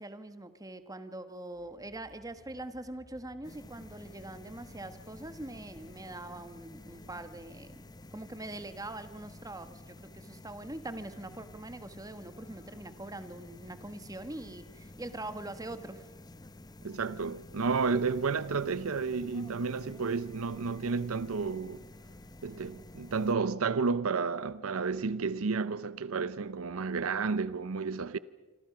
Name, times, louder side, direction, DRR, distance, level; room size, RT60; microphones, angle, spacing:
voice 1, 0.0-7.8 8.1-16.1, right 2 dB, 15° right, 1.3 m, -43 dB
sound 1, 1.5-6.7, equal, ahead, 3.7 m, -61 dB
sound 2, 3.4-23.3, left 2 dB, 20° left, 1.0 m, -51 dB
voice 2, 16.8-21.8 22.4-28.2, right 4 dB, 70° right, 0.7 m, -31 dB
27.5 x 25.5 x 6.0 m
head